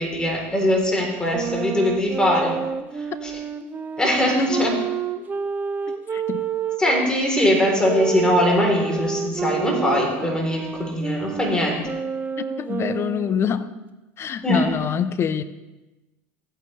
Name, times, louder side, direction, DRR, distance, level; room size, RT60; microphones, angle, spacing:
voice 1, 0.0-2.6 3.2-3.3 4.0-4.7 6.8-11.8 14.4-14.6, left 1 dB, 10° left, -1 dB, 3.6 m, -21 dB
sound 1, 1.3-7.1 7.8-13.4, right 7 dB, 25° right, 0.7 m, -29 dB
voice 2, 6.1-6.4 12.4-13.7 14.2-15.4, left 8 dB, 35° left, 13 dB, 0.8 m, -25 dB
15.5 x 9.0 x 3.3 m, 1.1 s
supercardioid pair, 95°, 7 cm